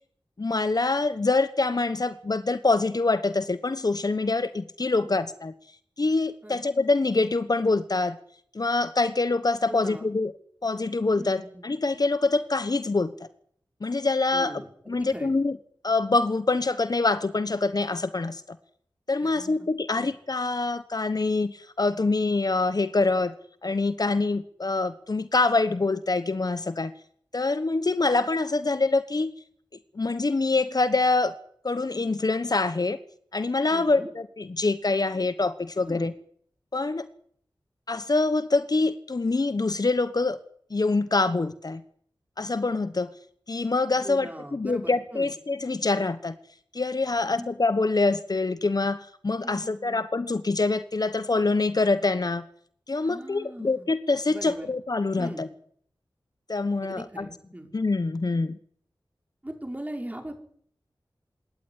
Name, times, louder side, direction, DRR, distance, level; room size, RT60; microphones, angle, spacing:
voice 1, 0.4-5.5 6.0-8.2 8.5-10.3 10.6-13.1 13.8-14.5 14.9-15.6 15.8-18.6 19.1-23.3 23.6-26.9 27.3-29.3 29.9-31.3 31.6-33.0 33.3-36.1 36.7-37.1 37.9-40.4 40.7-41.8 42.4-43.1 43.5-46.4 46.7-52.5 52.9-55.5 56.5-57.3 57.7-58.6, left 3 dB, 50° left, 13 dB, 1.2 m, -25 dB
voice 2, 9.7-10.1 11.2-11.7 14.3-15.3 19.2-19.7 19.9-20.1 33.7-34.1 35.9-36.1 44.0-45.3 47.1-47.5 49.4-50.1 53.0-53.9 54.3-54.7 55.2-55.5 56.8-57.7 59.4-60.4, right 1 dB, 20° right, 4 dB, 5.7 m, -40 dB
26.5 x 12.0 x 9.9 m, 0.62 s
wide cardioid pair, 50°, 8 cm